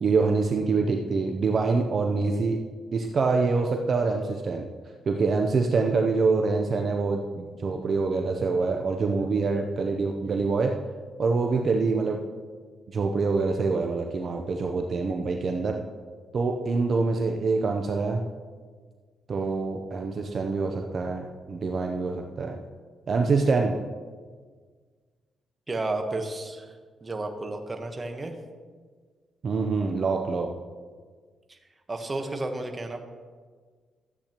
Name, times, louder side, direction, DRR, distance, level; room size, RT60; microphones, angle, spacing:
voice 1, 0.0-2.6 2.9-4.7 5.1-10.7 11.2-12.2 12.9-15.8 16.3-18.2 19.3-22.6 23.1-23.8 29.4-30.5, right 4 dB, 50° right, 3 dB, 0.7 m, -25 dB
voice 2, 25.7-26.7 27.0-28.3 31.5-31.6 31.9-33.0, right 2 dB, 25° right, 5 dB, 1.1 m, -32 dB
13.5 x 8.4 x 3.0 m, 1.5 s
cardioid pair, 95°, 0 cm